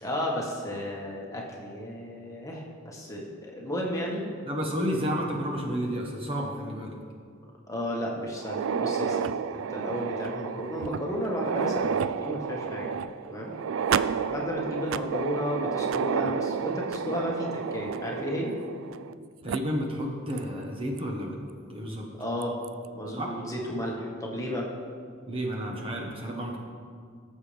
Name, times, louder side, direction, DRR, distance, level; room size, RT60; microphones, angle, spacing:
voice 1, 0.0-4.2 7.7-12.9 13.3-13.5 14.3-18.6 22.2-22.6 22.9-24.7, equal, 15° left, -2 dB, 1.5 m, -33 dB
voice 2, 4.5-7.0 19.4-21.4 21.7-22.1 23.1-23.3 25.3-26.6, equal, 25° right, -1 dB, 1.2 m, -31 dB
sound 1, 8.4-19.1 19.5-19.6 20.4-20.5 21.0-21.1 22.4-22.7, right 7 dB, 75° right, 0.3 m, -31 dB
18.0 x 7.6 x 3.4 m, 2.1 s
head